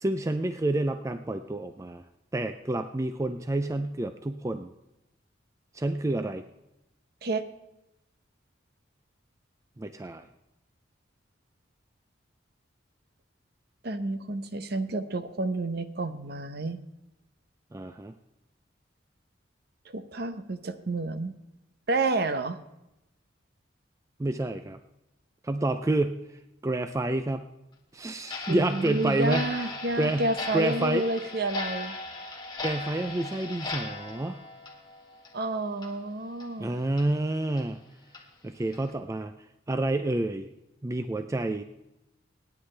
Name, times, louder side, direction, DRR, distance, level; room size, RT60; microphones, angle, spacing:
voice 1, 0.0-2.0 2.3-4.7 5.7-6.4 9.8-10.3 17.7-18.1 24.2-24.8 25.4-26.2 26.6-27.4 27.9-29.5 30.0-31.0 32.6-34.4 36.6-37.8 38.4-39.3 39.7-40.5 40.8-41.6, right 2 dB, 15° right, 8 dB, 0.4 m, -29 dB
voice 2, 13.8-16.8 19.9-21.3 21.9-22.6 28.5-32.0 35.3-36.7, right 2 dB, 55° right, 10 dB, 0.8 m, -30 dB
Clock, 28.2-35.5 35.8-35.9 36.4-36.5 37.0-37.1 37.6-37.7 38.1-38.2 38.7-38.9, left 3 dB, 20° left, 1.6 m, -38 dB
25.5 x 9.7 x 3.3 m, 0.92 s
head